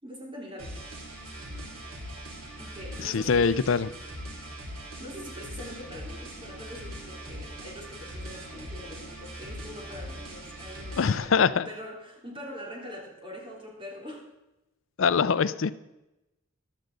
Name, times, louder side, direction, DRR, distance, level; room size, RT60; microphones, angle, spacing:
voice 1, 0.0-0.8 2.6-3.7 4.8-14.3, equal, 25° right, -2 dB, 3.3 m, -43 dB
sound 1, 0.6-11.2, equal, 85° right, 3.2 m, -41 dB
voice 2, 3.0-3.9 11.0-11.7 15.0-15.7, left 6 dB, 65° left, 15 dB, 0.5 m, -23 dB
14.5 x 12.0 x 3.9 m, 0.95 s
head